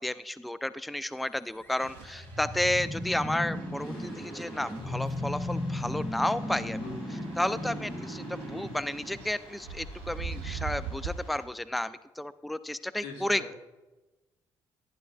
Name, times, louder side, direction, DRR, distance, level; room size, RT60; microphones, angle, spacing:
voice 1, 0.0-6.8 7.4-13.4, left 1 dB, ahead, 15 dB, 0.4 m, -32 dB
sound 1, 1.5-9.7, left 1 dB, 20° left, 2.4 m, -36 dB
sound 2, 1.8-11.3, right 5 dB, 90° right, 0.5 m, -44 dB
sound 3, 3.7-11.4, left 4 dB, 55° left, 2.9 m, -54 dB
voice 2, 6.6-7.2 13.0-13.5, left 4 dB, 90° left, 1 dB, 1.6 m, -43 dB
11.0 x 11.0 x 2.4 m, 1.1 s
hypercardioid pair, 55°, 11 cm